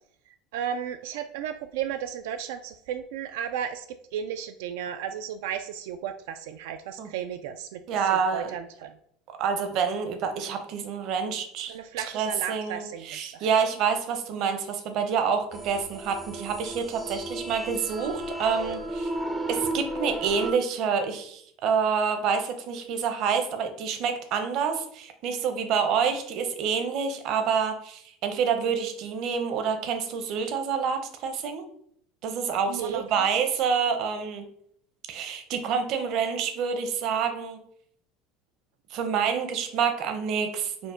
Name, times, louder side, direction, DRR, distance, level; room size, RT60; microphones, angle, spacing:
voice 1, 0.5-3.9 4.1-8.9 11.7-13.5 26.1-26.2 32.7-33.3, right 9 dB, 85° right, 8 dB, 0.3 m, -34 dB
voice 2, 7.9-8.5 9.4-11.7 12.1-19.1 19.5-31.6 32.2-34.4 35.1-37.6 38.9-40.9, right 6 dB, 45° right, 7 dB, 0.7 m, -27 dB
sound 1, 15.5-20.5, right 1 dB, 10° right, 0.4 m, -34 dB
5.0 x 2.1 x 4.8 m, 0.66 s
cardioid pair, 165°, 0 cm